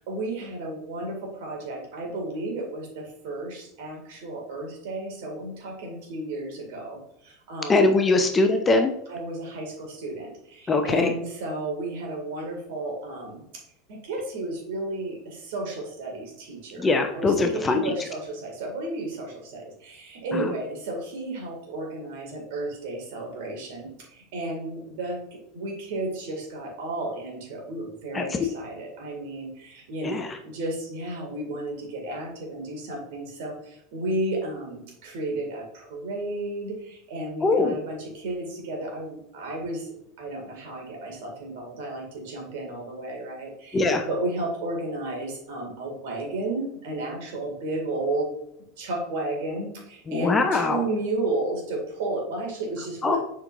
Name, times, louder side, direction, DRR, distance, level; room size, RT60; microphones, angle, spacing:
voice 1, 0.0-7.9 9.1-13.6 13.9-48.3 48.8-53.2, right 2 dB, 55° right, 1 dB, 2.1 m, -33 dB
voice 2, 7.7-8.9 10.7-11.1 16.8-17.8 20.3-20.5 28.1-28.4 30.0-30.3 37.4-37.7 43.7-44.1 50.1-50.8 53.0-53.2, left 3 dB, 20° left, 5 dB, 0.7 m, -22 dB
7.2 x 5.2 x 2.5 m, 0.78 s
figure-of-eight pair, 80°, 0 cm